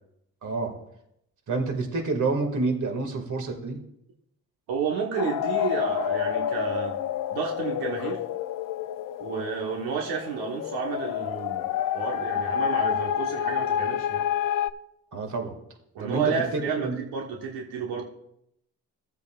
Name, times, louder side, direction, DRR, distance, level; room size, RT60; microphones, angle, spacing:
voice 1, 0.4-0.8 1.5-3.8 15.1-15.5 16.0-17.0, right 3 dB, 55° right, 4 dB, 2.1 m, -28 dB
voice 2, 4.7-7.0 7.3-8.2 9.2-14.3 15.9-18.0, right 6 dB, 90° right, -1 dB, 1.3 m, -31 dB
sound 1, 5.2-14.7, left 10 dB, 60° left, 0.5 m, -29 dB
15.5 x 8.1 x 2.4 m, 0.77 s
cardioid pair, 80°, 37 cm